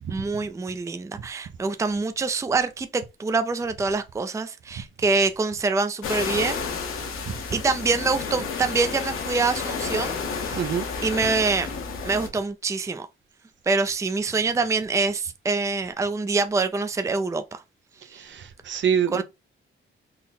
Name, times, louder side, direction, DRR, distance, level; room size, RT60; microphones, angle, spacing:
voice 1, 0.1-6.7 7.5-10.7 11.0-11.7 12.0-13.1 13.7-17.6 18.1-18.2 19.1-19.2, right 4 dB, 15° right, 0.4 m, -25 dB
sound 1, 6.0-12.3, left 5 dB, 75° left, 1.0 m, -31 dB
voice 2, 10.5-10.9 18.1-19.2, right 8 dB, 60° right, 0.6 m, -26 dB
3.8 x 2.2 x 4.1 m
cardioid pair, 80°, 21 cm